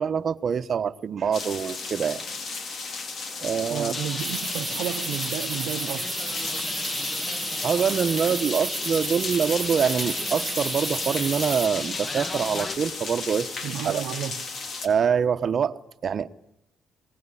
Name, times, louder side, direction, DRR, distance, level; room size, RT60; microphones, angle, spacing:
voice 1, 0.0-2.2 3.4-3.9 7.6-13.5 13.8-14.0 14.8-16.3, right 7 dB, 50° right, 1.1 m, -25 dB
sound 1, 1.3-14.9, left 4 dB, 55° left, 4.0 m, -34 dB
voice 2, 3.7-6.1 13.6-14.4, right 11 dB, 90° right, 1.0 m, -32 dB
Bird, 3.9-12.8, left 2 dB, 30° left, 2.3 m, -35 dB
sound 2, 4.2-11.7, right 3 dB, 25° right, 1.3 m, -34 dB
26.5 x 21.0 x 9.9 m
cardioid pair, 90°, 0 cm